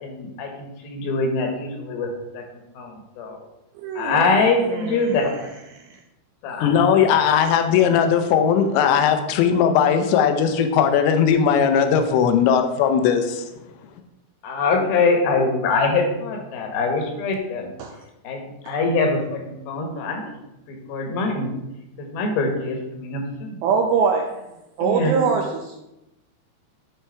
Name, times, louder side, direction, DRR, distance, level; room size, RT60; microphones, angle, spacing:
voice 1, 0.0-2.4 2.8-3.4 4.0-5.5 6.4-7.3 7.7-7.8 14.4-17.7 18.2-20.4 20.7-21.5 22.0-23.6 24.8-25.3, left 3 dB, 65° left, 3 dB, 2.8 m, -24 dB
voice 2, 3.8-5.2 5.9-6.0 17.8-17.9 23.6-24.3 24.8-25.8, right 5 dB, 80° right, 2 dB, 2.2 m, -23 dB
voice 3, 6.6-13.4, left 7 dB, 85° left, 7 dB, 3.0 m, -18 dB
11.5 x 4.5 x 4.5 m, 0.92 s
omnidirectional pair, 5.1 m